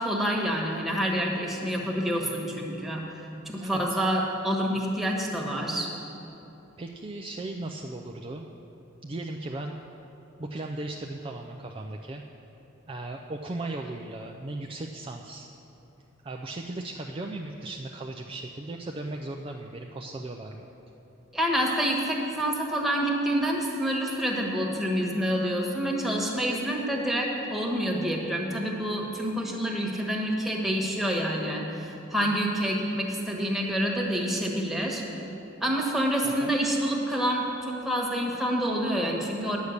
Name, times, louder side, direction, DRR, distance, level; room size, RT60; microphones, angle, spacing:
voice 1, 0.0-3.2 3.4-5.9 21.3-35.0 35.6-39.6, equal, ahead, -2 dB, 1.4 m, -27 dB
voice 2, 6.8-8.4 9.0-9.8 10.4-12.2 12.9-15.5 16.2-20.7 36.2-36.5, right 2 dB, 25° right, 1 dB, 0.4 m, -37 dB
10.0 x 8.3 x 6.5 m, 3.0 s
head